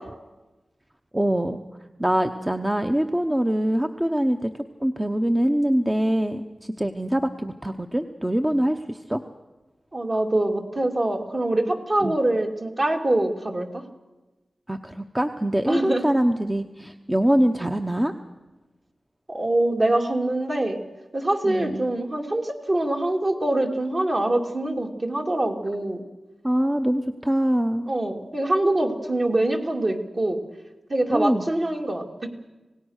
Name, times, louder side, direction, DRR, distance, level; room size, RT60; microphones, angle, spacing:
voice 1, 1.1-1.6 2.0-4.5 4.8-9.2 12.0-12.2 14.7-18.1 21.4-21.9 26.4-27.9 31.1-31.5, right 1 dB, 15° right, 7 dB, 0.9 m, -24 dB
voice 2, 9.9-13.7 15.7-16.1 19.3-20.8 21.1-26.0 27.9-30.4 30.9-32.3, right 1 dB, 40° right, 2 dB, 2.4 m, -24 dB
26.5 x 18.0 x 6.5 m, 1.2 s
wide cardioid pair, 80°, 0 cm